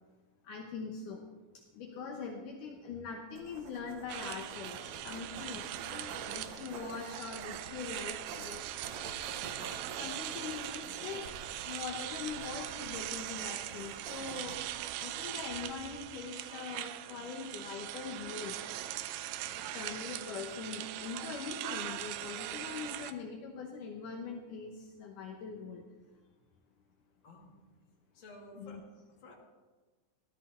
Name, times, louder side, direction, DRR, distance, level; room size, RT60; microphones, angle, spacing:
voice 1, 0.5-1.2 1.7-8.7 10.0-11.2 11.7-14.6 15.0-18.6 19.7-24.7 25.0-25.8 28.6-28.8, left 5 dB, 70° left, 1 dB, 2.5 m, -42 dB
sound 1, 3.4-16.1, right 3 dB, 60° right, 2.5 m, -49 dB
sound 2, 4.1-23.1, right 13 dB, 90° right, 2.5 m, -41 dB
voice 2, 28.1-28.8 29.2-29.3, left 2 dB, 35° left, -2 dB, 2.8 m, -53 dB
16.0 x 13.0 x 4.4 m, 1.3 s
omnidirectional pair, 4.0 m